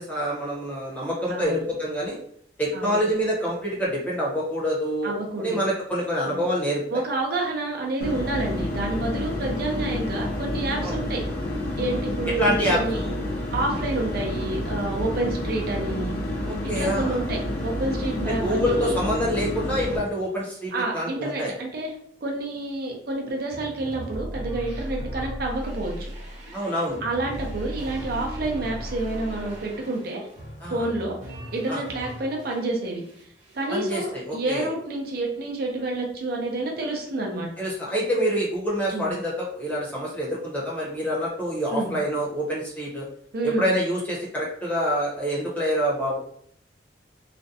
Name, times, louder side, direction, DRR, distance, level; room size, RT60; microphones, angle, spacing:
voice 1, 0.0-2.2 2.6-7.0 10.8-11.0 12.3-13.2 16.5-17.2 18.3-21.5 26.5-27.0 30.6-30.9 31.7-31.8 33.7-34.7 37.6-43.0 43.4-46.2, equal, 10° left, -5 dB, 0.7 m, -26 dB
voice 2, 1.3-1.6 2.7-3.0 5.0-5.6 6.3-6.4 6.9-11.2 11.8-13.0 13.5-16.2 16.6-19.0 20.7-21.9 22.2-25.9 27.0-30.3 30.7-31.2 31.5-33.0 33.5-37.5 38.9-39.1 41.7-41.9 43.3-43.7, right 2 dB, 60° right, 0 dB, 0.6 m, -29 dB
sound 1, 8.0-20.0, left 1 dB, 60° left, 0.6 m, -29 dB
sound 2, 23.5-32.7 33.0-33.8, equal, 40° right, 0.9 m, -37 dB
2.4 x 2.1 x 2.7 m, 0.65 s
head